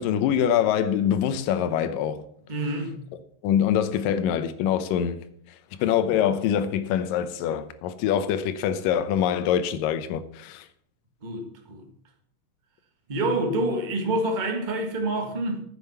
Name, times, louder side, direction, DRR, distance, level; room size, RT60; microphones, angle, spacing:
voice 1, 0.0-2.2 3.4-5.2 5.8-10.7, left 9 dB, 80° left, 2.4 m, -24 dB
voice 2, 2.5-3.0 11.2-11.8 13.1-15.6, right 1 dB, 55° right, 0.5 m, -27 dB
9.8 x 7.7 x 7.0 m
omnidirectional pair, 4.1 m